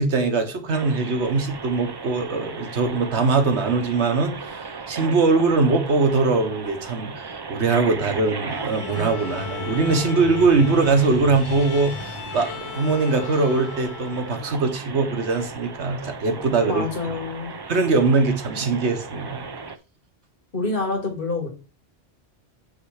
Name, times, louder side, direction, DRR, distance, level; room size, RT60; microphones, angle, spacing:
voice 1, 0.0-16.8 17.7-19.5, right 3 dB, 85° right, 1.4 m, -22 dB
sound 1, 0.7-19.8, right 4 dB, 35° right, 0.4 m, -36 dB
Bowed string instrument, 8.5-14.8, left 9 dB, 80° left, 1.1 m, -38 dB
sound 2, 8.7-14.0, left 2 dB, 30° left, 1.1 m, -39 dB
voice 2, 16.7-17.5 20.5-21.5, left 3 dB, 55° left, 2.2 m, -27 dB
8.6 x 3.4 x 4.8 m
omnidirectional pair, 1.1 m